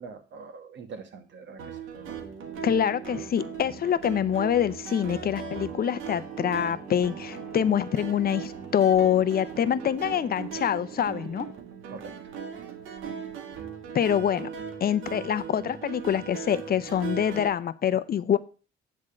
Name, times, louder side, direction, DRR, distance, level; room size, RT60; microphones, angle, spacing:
voice 1, 0.0-1.8 11.9-12.4, right 5 dB, 65° right, 7 dB, 1.6 m, -43 dB
sound 1, 1.6-17.5, right 7 dB, 85° right, 1.7 m, -39 dB
Singing, 1.7-11.5, right 4 dB, 45° right, 2.3 m, -46 dB
voice 2, 2.6-11.5 13.9-14.5 14.8-18.4, left 9 dB, 50° left, 15 dB, 0.6 m, -25 dB
9.6 x 3.7 x 6.3 m, 0.35 s
cardioid pair, 90°, 20 cm